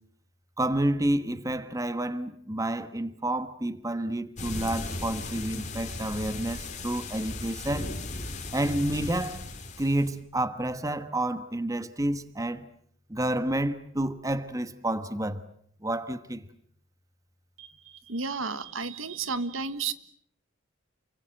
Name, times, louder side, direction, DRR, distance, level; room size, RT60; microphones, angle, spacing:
voice 1, 0.6-7.9 8.5-9.5 9.8-12.7 13.1-15.4 15.8-16.5, right 1 dB, 15° right, 1.3 m, -29 dB
sound 1, 4.4-10.2, left 2 dB, 35° left, 3.4 m, -37 dB
voice 2, 18.1-19.9, right 4 dB, 80° right, 1.5 m, -32 dB
29.0 x 24.0 x 7.8 m
head